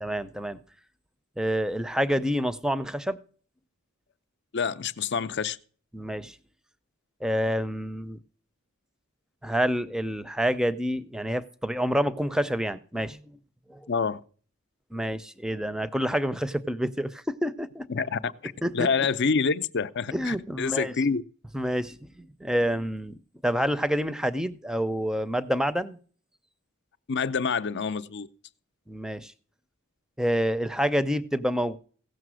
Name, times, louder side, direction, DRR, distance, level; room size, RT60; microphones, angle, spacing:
voice 1, 0.0-0.6 1.4-3.2 5.9-6.4 7.2-8.2 9.4-13.2 13.7-13.8 14.9-17.9 18.6-18.9 20.1-20.9 21.5-26.0 28.9-29.3 30.2-31.8, equal, 5° right, 0.5 m, -28 dB
voice 2, 4.5-5.6 13.9-14.2 17.9-21.2 27.1-28.3, left 5 dB, 55° left, 0.6 m, -27 dB
16.5 x 6.6 x 6.2 m
head